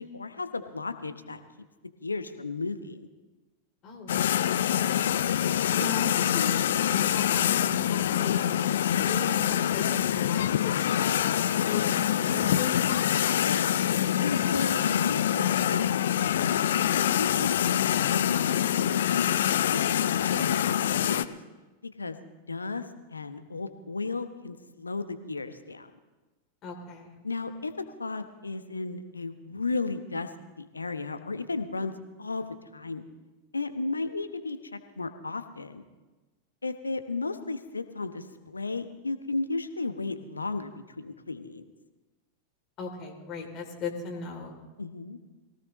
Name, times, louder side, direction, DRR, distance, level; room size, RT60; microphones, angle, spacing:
voice 1, 0.0-1.4 2.0-3.1 13.3-13.8 14.2-16.4 17.2-17.8 18.1-19.3 19.7-21.4 22.0-22.2 22.5-22.8 23.1-25.9 27.2-27.7 28.0-30.3 30.6-31.9 32.2-33.0 33.5-35.8 36.6-41.7 44.8-45.2, left 3 dB, 80° left, 10 dB, 1.0 m, -34 dB
voice 2, 3.8-5.0 5.7-6.5 6.8-12.8 26.6-27.2 42.8-44.6, left 4 dB, 35° left, 1 dB, 3.0 m, -38 dB
sound 1, 4.1-21.3, left 10 dB, 60° left, 0.5 m, -25 dB
22.5 x 17.5 x 3.1 m, 1.2 s
figure-of-eight pair, 90°, 0 cm